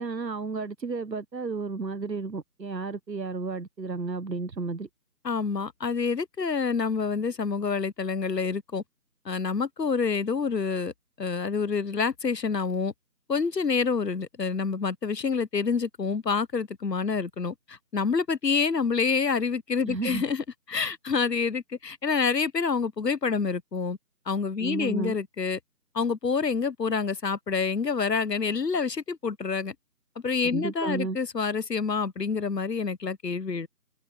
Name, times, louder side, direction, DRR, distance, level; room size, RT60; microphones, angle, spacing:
voice 1, 0.0-4.9 19.8-20.2 24.6-25.1 30.4-31.2, right 4 dB, 90° right, 1.2 m, -32 dB
voice 2, 5.2-8.8 9.2-10.9 11.2-12.9 13.3-24.0 24.3-25.6 25.9-29.7 30.2-33.7, left 5 dB, 80° left, 1.1 m, -27 dB
figure-of-eight pair, 165°, 49 cm